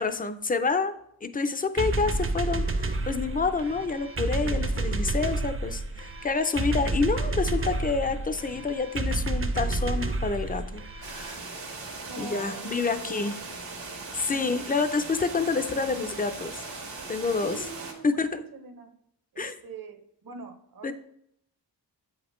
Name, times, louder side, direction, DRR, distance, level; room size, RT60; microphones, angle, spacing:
voice 1, 0.0-11.6 12.2-13.3 14.1-16.6 17.1-17.6 18.0-18.4 19.4-19.5 20.8-20.9, left 4 dB, 20° left, 10 dB, 0.4 m, -28 dB
sound 1, 1.8-11.3, right 2 dB, 30° right, 0.6 m, -30 dB
sound 2, 11.0-17.9, right 3 dB, 75° right, 1.4 m, -39 dB
voice 2, 12.1-13.3 14.3-14.5 17.4-19.0 19.3-20.9, right 3 dB, 50° right, 7 dB, 0.9 m, -43 dB
7.9 x 5.1 x 3.1 m, 0.74 s
wide cardioid pair, 90°, 44 cm